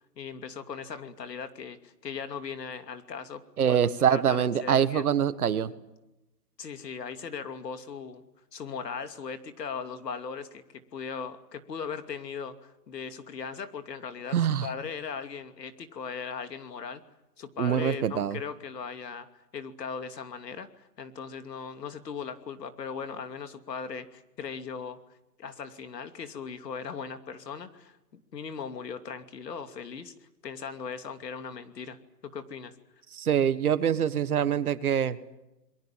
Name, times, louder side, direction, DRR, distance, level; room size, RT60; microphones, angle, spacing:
voice 1, 0.0-3.8 4.1-5.1 6.6-8.2 8.5-10.6 10.9-17.0 17.4-19.3 19.5-25.0 25.4-30.1 30.4-32.0 32.2-32.7, left 6 dB, 75° left, 9 dB, 2.8 m, -38 dB
voice 2, 3.6-5.7 14.3-14.7 17.6-18.4 33.2-35.2, right 8 dB, 60° right, 14 dB, 1.7 m, -24 dB
28.0 x 22.5 x 7.4 m, 0.94 s
hypercardioid pair, 170°, 49 cm